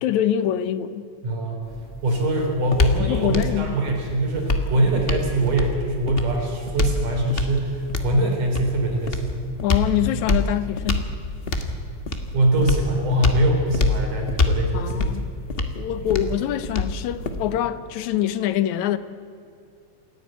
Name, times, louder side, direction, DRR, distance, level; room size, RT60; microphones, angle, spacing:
voice 1, 0.0-1.1 3.0-3.7 9.6-11.1 14.7-15.3 15.6-19.0, left 11 dB, 75° left, 14 dB, 2.1 m, -24 dB
voice 2, 1.2-1.6 2.0-9.5 10.0-10.1 12.3-15.1, right 1 dB, 90° right, 1 dB, 5.4 m, -23 dB
sound 1, 1.6-17.7, left 2 dB, 40° left, 0.7 m, -26 dB
27.5 x 11.0 x 9.3 m, 2.5 s
omnidirectional pair, 3.5 m